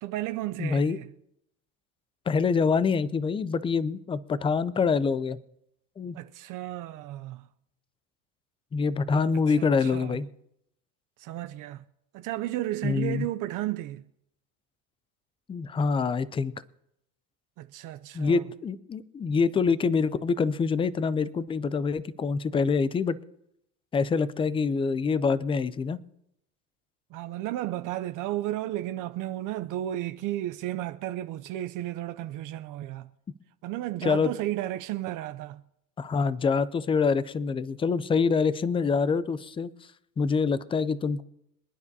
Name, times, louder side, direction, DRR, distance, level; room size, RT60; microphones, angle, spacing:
voice 1, 0.0-1.1 6.1-7.5 9.3-10.2 11.2-11.8 12.1-14.0 17.6-18.4 27.1-33.1 33.6-35.6, right 14 dB, 50° right, 0.6 m, -33 dB
voice 2, 0.6-1.0 2.3-5.4 6.0-6.2 8.7-10.3 12.8-13.3 15.5-16.5 18.1-23.2 23.9-26.0 34.0-34.3 36.0-39.9 40.2-41.2, left 5 dB, 15° left, 0.4 m, -25 dB
26.5 x 9.7 x 2.8 m
supercardioid pair, 115°, 39 cm